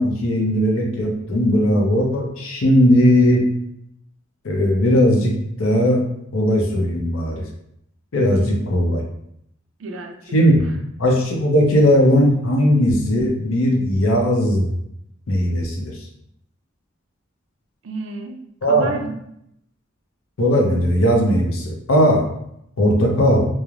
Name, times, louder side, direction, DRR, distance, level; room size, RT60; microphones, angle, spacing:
voice 1, 0.0-3.4 4.4-5.3 5.6-6.0 6.3-7.4 8.1-9.0 10.3-10.6 11.0-14.7 15.3-16.0 18.6-18.9 20.4-22.2 22.8-23.5, equal, 80° left, 1 dB, 0.6 m, -17 dB
voice 2, 9.8-10.2 10.6-10.8 17.8-19.2, right 3 dB, 70° right, 4 dB, 0.4 m, -32 dB
3.1 x 2.0 x 2.4 m, 0.76 s
head